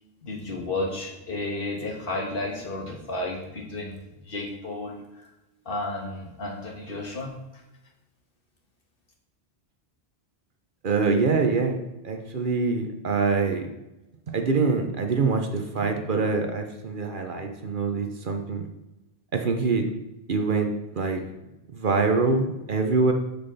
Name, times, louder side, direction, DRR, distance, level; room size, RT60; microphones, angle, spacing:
voice 1, 0.2-5.0 5.6-7.3, left 2 dB, 55° left, -1 dB, 1.6 m, -32 dB
voice 2, 10.8-11.8 12.0-13.7 14.3-18.6 19.3-19.8 20.3-20.7 20.9-21.2 21.7-23.1, right 4 dB, 55° right, 4 dB, 0.9 m, -24 dB
7.3 x 6.7 x 4.1 m, 0.96 s
omnidirectional pair, 1.1 m